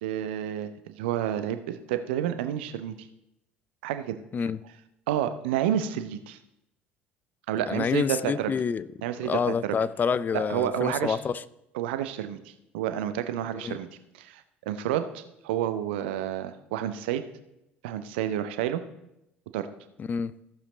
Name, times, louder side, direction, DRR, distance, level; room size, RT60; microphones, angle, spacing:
voice 1, 0.0-2.9 3.8-4.2 5.1-6.4 7.5-8.5 9.0-9.8 10.3-11.2 11.7-13.9 14.1-17.2 17.8-18.8 19.5-19.7, right 11 dB, 65° right, 0.7 m, -30 dB
voice 2, 7.7-8.8 9.2-11.4 13.5-13.8 20.0-20.3, left 6 dB, 30° left, 0.4 m, -28 dB
14.5 x 7.3 x 4.0 m
figure-of-eight pair, 60°, 6 cm